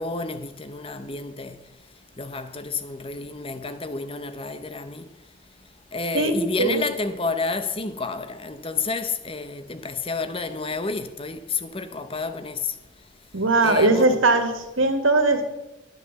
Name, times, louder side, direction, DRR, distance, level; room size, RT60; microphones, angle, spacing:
voice 1, 0.0-1.6 2.2-5.1 5.9-12.7 13.6-14.2, left 4 dB, 25° left, 0.8 m, -30 dB
voice 2, 6.1-6.8 13.3-15.5, right 2 dB, 75° right, 1.9 m, -20 dB
11.0 x 8.3 x 6.9 m
head